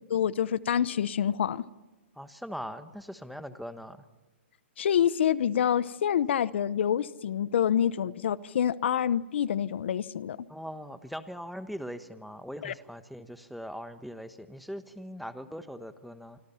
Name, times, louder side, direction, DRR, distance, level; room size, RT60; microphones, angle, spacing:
voice 1, 0.1-1.6 4.8-10.4 12.6-12.7, left 9 dB, 65° left, 18 dB, 0.9 m, -27 dB
voice 2, 2.1-4.0 10.5-16.4, equal, ahead, 10 dB, 1.2 m, -41 dB
27.0 x 25.5 x 5.7 m, 1.2 s
hypercardioid pair, 145°, 6 cm